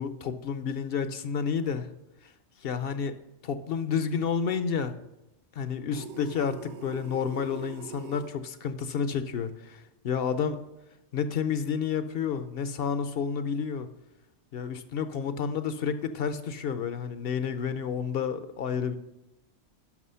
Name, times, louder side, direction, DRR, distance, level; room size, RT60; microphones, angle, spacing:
voice 1, 0.0-1.9 2.2-2.3 2.6-3.1 3.4-5.0 5.6-10.6 11.1-13.9 14.5-19.0, left 6 dB, 60° left, 11 dB, 0.7 m, -30 dB
sound 1, 5.9-8.3, right 6 dB, 55° right, 0.6 m, -42 dB
11.0 x 6.0 x 5.6 m, 0.94 s
omnidirectional pair, 1.2 m